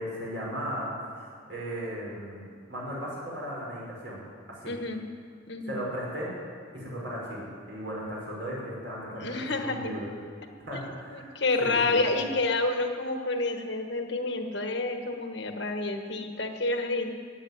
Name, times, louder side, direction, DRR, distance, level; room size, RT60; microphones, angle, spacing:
voice 1, 0.0-2.4 2.7-4.2 4.5-4.7 5.7-6.3 6.7-10.1 10.7-11.3 11.6-12.0, equal, 60° right, -5 dB, 5.0 m, -36 dB
voice 2, 4.7-5.0 5.5-5.8 9.1-9.9 10.7-10.8 11.1-17.2, left 3 dB, 60° left, 5 dB, 1.4 m, -29 dB
14.0 x 8.6 x 9.6 m, 2.2 s
head